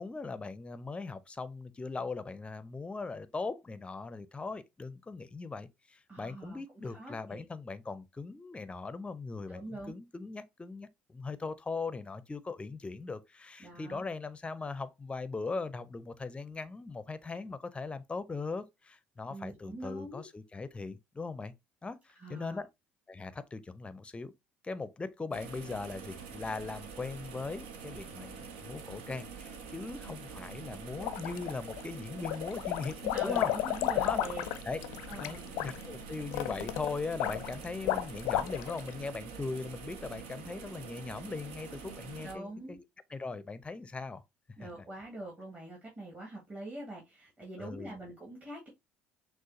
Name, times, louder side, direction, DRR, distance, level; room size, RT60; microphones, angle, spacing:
voice 1, 0.0-21.5 21.8-22.7 23.1-24.3 24.6-33.5 34.0-34.2 34.7-34.8 35.2-42.8 43.1-44.2 44.6-44.7 47.6-48.0, left 4 dB, 20° left, 0.5 m, -40 dB
voice 2, 6.1-6.6 6.9-7.5 9.5-9.9 13.6-14.0 19.3-20.3 22.2-22.6 32.9-34.4 35.1-35.5 42.2-42.8 44.6-48.7, right 1 dB, 30° right, 1.8 m, -44 dB
sound 1, 25.3-42.3, right 5 dB, 75° right, 0.7 m, -46 dB
sound 2, 31.0-31.8 32.2-38.9, left 12 dB, 70° left, 0.4 m, -33 dB
6.2 x 2.4 x 2.7 m
hypercardioid pair, 60°, 6 cm